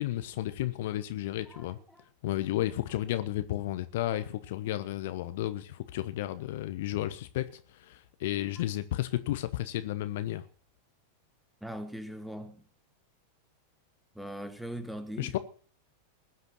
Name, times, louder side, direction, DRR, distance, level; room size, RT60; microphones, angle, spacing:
voice 1, 0.0-1.8 2.2-10.4 15.2-15.4, left 14 dB, 55° left, 1.1 m, -33 dB
voice 2, 1.5-2.0 11.6-12.6 14.1-15.4, equal, ahead, 1.6 m, -40 dB
20.5 x 8.1 x 6.2 m
figure-of-eight pair, 90°, 0 cm